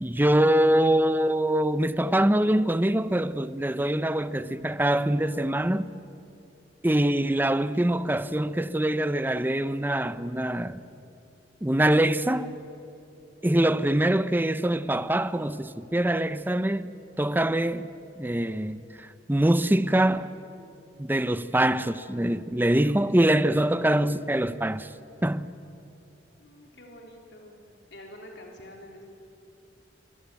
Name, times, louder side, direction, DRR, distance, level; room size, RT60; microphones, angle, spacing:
voice 1, 0.0-5.9 6.8-10.8 11.6-12.5 13.4-16.9 17.2-17.9 18.2-20.3 21.0-24.9 25.2-25.5, right 1 dB, 10° right, 0.7 m, -24 dB
voice 2, 26.4-27.6 27.9-29.0, left 1 dB, 70° left, 3.9 m, -47 dB
27.5 x 22.5 x 9.3 m
head